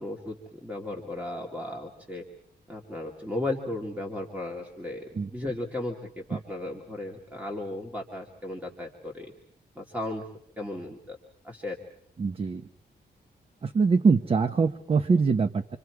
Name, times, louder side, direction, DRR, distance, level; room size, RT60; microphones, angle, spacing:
voice 1, 0.0-2.2 2.7-9.3 9.8-10.2 10.6-11.2 11.4-11.8, left 1 dB, 10° right, 0 dB, 2.4 m, -35 dB
voice 2, 12.2-12.7 13.6-15.8, right 4 dB, 35° right, 9 dB, 0.9 m, -23 dB
28.0 x 25.5 x 4.7 m, 0.70 s
wide cardioid pair, 175°, 18 cm